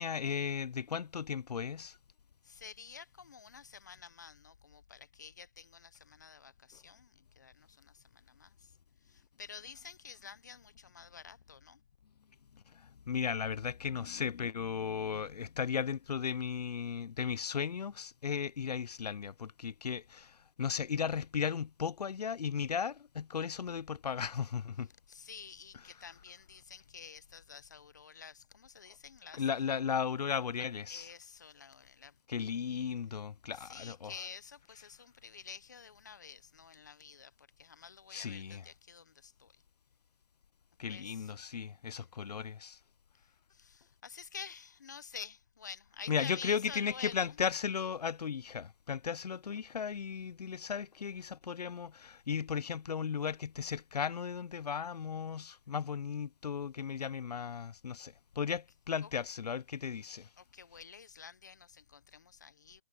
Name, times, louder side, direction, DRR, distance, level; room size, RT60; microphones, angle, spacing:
voice 1, 0.0-2.0 12.7-24.9 29.3-31.1 32.3-34.1 38.1-38.6 40.8-42.8 46.1-60.3, left 7 dB, 75° left, 0.5 m, -36 dB
voice 2, 2.4-8.7 9.0-11.8 25.1-29.4 30.9-32.2 33.5-39.5 40.9-41.3 43.5-47.4 59.0-59.1 60.4-62.8, left 6 dB, 25° left, 0.7 m, -50 dB
hypercardioid pair, 175°, 21 cm